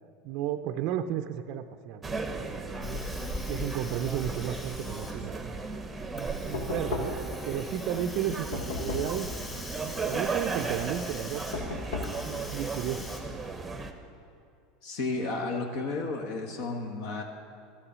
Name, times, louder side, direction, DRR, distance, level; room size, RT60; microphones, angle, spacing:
voice 1, 0.2-3.0 3.5-5.6 6.1-7.1 7.5-9.3 9.8-11.8 12.2-13.0, right 10 dB, 50° right, 7 dB, 0.5 m, -34 dB
sound 1, 2.0-13.9, right 3 dB, 10° right, 0.8 m, -36 dB
Hiss, 2.8-13.2, left 2 dB, 15° left, 2.4 m, -43 dB
Knock, 6.5-7.4 8.5-9.3 11.5-12.3, left 3 dB, 85° left, 1.8 m, -34 dB
voice 2, 14.8-17.2, left 3 dB, 60° left, 2 dB, 1.2 m, -33 dB
13.0 x 9.8 x 6.2 m, 2.4 s
supercardioid pair, 150°, 0 cm